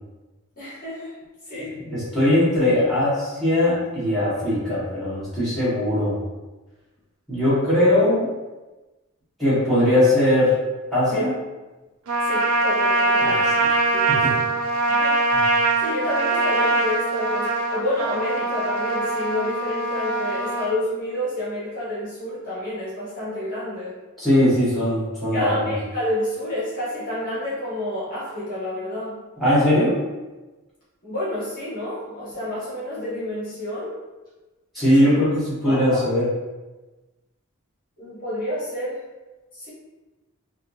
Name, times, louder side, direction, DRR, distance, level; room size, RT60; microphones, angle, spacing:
voice 1, 0.6-1.1 1.5-1.7 12.2-13.6 13.9-14.5 14.9-15.2 15.8-23.9 25.3-29.2 31.0-33.9 35.0-35.2 35.6-36.0 38.0-39.0 39.5-39.7, left 1 dB, 40° left, -10 dB, 1.0 m, -29 dB
voice 2, 1.9-6.1 7.3-8.3 9.4-10.5 10.9-11.4 13.2-13.4 14.2-14.3 24.2-25.7 29.4-30.0 34.7-35.3 35.6-36.3, left 1 dB, ahead, -14 dB, 1.0 m, -20 dB
Trumpet, 12.1-20.8, right 2 dB, 75° right, 0.4 m, -22 dB
2.7 x 2.5 x 2.3 m, 1.2 s
head